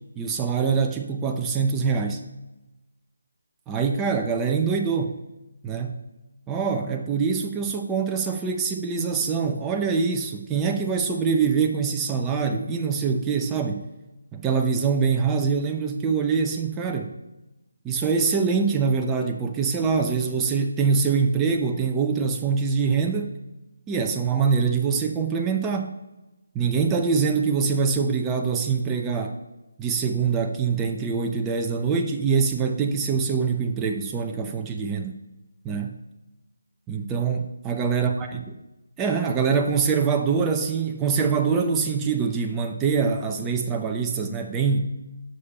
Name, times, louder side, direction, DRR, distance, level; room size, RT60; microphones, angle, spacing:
voice 1, 0.2-2.2 3.7-5.2 5.6-5.9 6.5-13.8 14.3-17.1 17.8-23.3 23.9-26.0 26.5-29.4 29.8-35.2 35.6-35.9 36.9-38.1 39.0-44.9, right 5 dB, 10° right, 2 dB, 0.8 m, -24 dB
9.7 x 7.1 x 5.4 m, 1.0 s
figure-of-eight pair, 155°, 0 cm